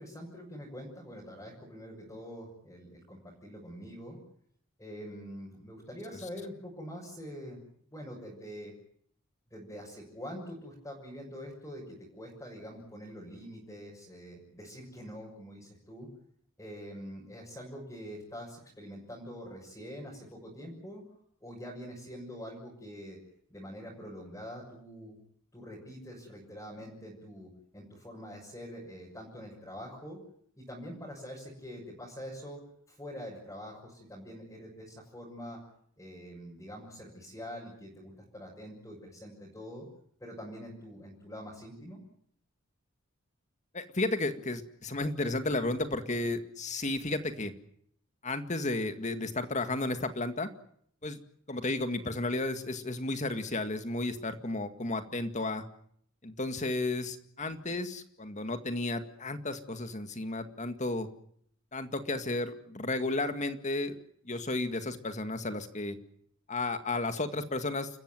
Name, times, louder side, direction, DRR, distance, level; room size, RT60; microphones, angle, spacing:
voice 1, 0.0-4.2 4.8-7.6 7.9-8.7 9.5-16.1 16.6-21.0 21.4-23.2 23.5-25.1 25.5-30.2 30.5-32.6 32.9-35.6 36.0-39.8 40.2-42.0, equal, 15° left, -5 dB, 6.5 m, -45 dB
voice 2, 43.7-47.5 48.2-50.5 51.0-51.2 51.5-55.6 56.2-61.1 61.7-64.0 64.3-66.0 66.5-67.9, left 2 dB, 35° left, 9 dB, 2.0 m, -33 dB
29.5 x 14.5 x 9.2 m, 0.66 s
head